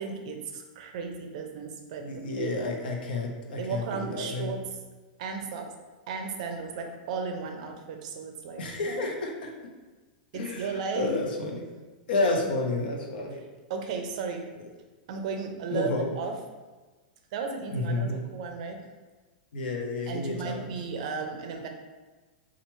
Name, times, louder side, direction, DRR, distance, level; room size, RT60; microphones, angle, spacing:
voice 1, 0.0-2.5 3.6-4.6 5.2-5.7 6.1-9.1 10.3-11.1 12.3-12.5 13.7-14.5 15.1-15.9 16.2-16.4 17.3-18.8 20.1-21.7, right 5 dB, 45° right, 4 dB, 0.5 m, -35 dB
voice 2, 2.0-4.5 8.6-9.5 10.3-11.7 12.1-13.4 15.7-16.2 17.7-18.2 19.5-20.7, left 2 dB, 80° left, 1 dB, 0.8 m, -30 dB
4.5 x 2.4 x 3.0 m, 1.3 s
supercardioid pair, 175°, 5 cm